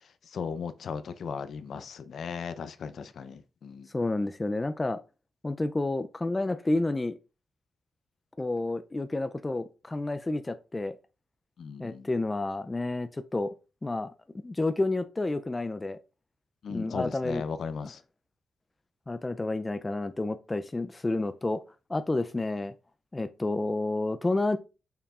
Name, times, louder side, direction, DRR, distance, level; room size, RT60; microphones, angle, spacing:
voice 1, 0.3-3.9 11.6-12.1 16.6-18.0, left 6 dB, 65° left, 0.6 m, -36 dB
voice 2, 3.9-5.0 5.4-7.2 8.4-11.0 11.8-13.5 13.8-14.1 14.4-16.0 16.7-17.4 19.1-21.6 21.9-22.7 23.1-24.6, left 2 dB, 20° left, 0.4 m, -30 dB
6.8 x 5.9 x 2.4 m
cardioid pair, 120°, 0 cm